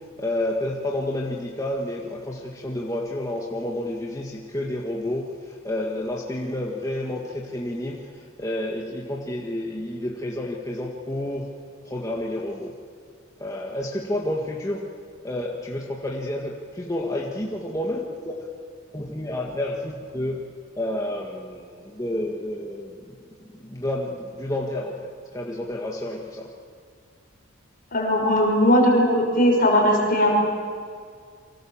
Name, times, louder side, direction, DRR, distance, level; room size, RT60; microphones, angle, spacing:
voice 1, 0.2-11.5 11.9-12.8 13.4-14.9 15.2-18.5 18.9-20.4 20.8-23.2 23.6-26.5, left 1 dB, 15° left, -2 dB, 1.9 m, -30 dB
voice 2, 27.9-30.3, equal, 45° left, 0 dB, 5.8 m, -19 dB
29.5 x 24.5 x 7.4 m, 2.1 s
head